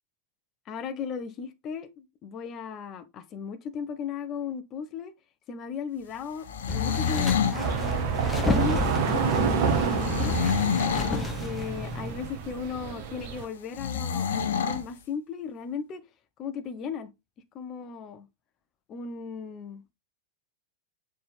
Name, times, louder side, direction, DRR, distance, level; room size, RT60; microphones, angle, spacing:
voice 1, 0.7-5.1 5.5-10.4 11.1-16.0 16.4-17.1 17.5-18.3 18.9-19.8, left 6 dB, 30° left, 0.9 m, -36 dB
sound 1, 6.4-7.6 10.0-11.2 13.7-14.8, left 7 dB, 65° left, 0.8 m, -27 dB
sound 2, 6.7-12.1, left 2 dB, 15° left, 1.2 m, -32 dB
sound 3, 7.5-13.5, right 5 dB, 50° right, 1.4 m, -28 dB
6.6 x 4.3 x 3.5 m
figure-of-eight pair, 90°, 0 cm